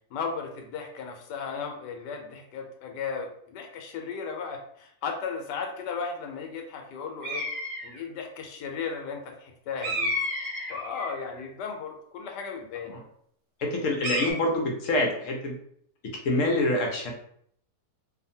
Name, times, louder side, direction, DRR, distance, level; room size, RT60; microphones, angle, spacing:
voice 1, 0.1-7.5 7.8-10.1 10.7-13.0, left 5 dB, 85° left, 3 dB, 1.2 m, -35 dB
sound 1, 7.2-8.0 9.8-11.3 14.0-14.3, equal, 45° right, 1.0 m, -31 dB
voice 2, 13.6-15.6 16.2-17.1, left 1 dB, 65° left, 0 dB, 0.8 m, -26 dB
2.7 x 2.5 x 2.7 m, 0.66 s
omnidirectional pair, 1.8 m